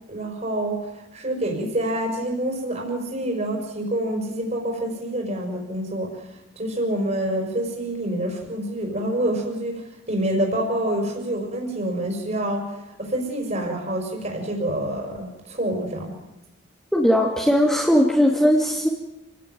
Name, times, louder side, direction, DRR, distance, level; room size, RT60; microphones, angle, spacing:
voice 1, 0.1-6.3 6.6-12.7 13.0-16.1, right 1 dB, 40° right, 1 dB, 5.6 m, -27 dB
voice 2, 16.9-18.9, equal, 5° left, -1 dB, 2.2 m, -18 dB
28.5 x 17.5 x 9.3 m, 0.93 s
head